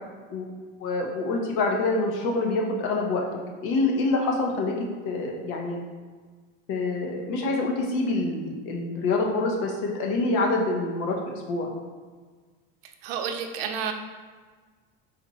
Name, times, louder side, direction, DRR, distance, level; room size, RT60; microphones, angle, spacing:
voice 1, 0.8-3.3 3.6-4.8 5.0-5.8 6.7-11.7, left 3 dB, 65° left, 1 dB, 0.9 m, -26 dB
voice 2, 13.0-13.9, right 7 dB, 75° right, 5 dB, 0.6 m, -30 dB
4.3 x 2.5 x 4.1 m, 1.5 s
supercardioid pair, 145°, 29 cm